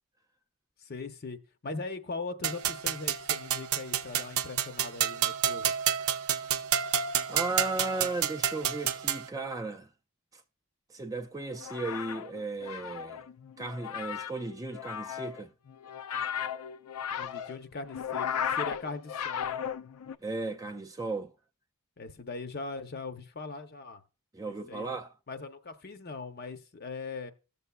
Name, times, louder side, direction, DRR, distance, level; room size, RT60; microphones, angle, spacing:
voice 1, 0.8-5.7 17.1-19.6 22.0-24.0 24.7-24.9 25.3-27.3, left 3 dB, 45° left, 0.6 m, -40 dB
sound 1, 2.4-9.3, right 9 dB, 80° right, 0.6 m, -30 dB
voice 2, 7.3-9.9 10.9-13.2 13.6-15.5 20.2-21.3 24.3-25.1, right 3 dB, 15° right, 0.4 m, -35 dB
sound 2, 11.5-20.2, left 8 dB, 85° left, 0.4 m, -36 dB
17.0 x 6.8 x 2.3 m
head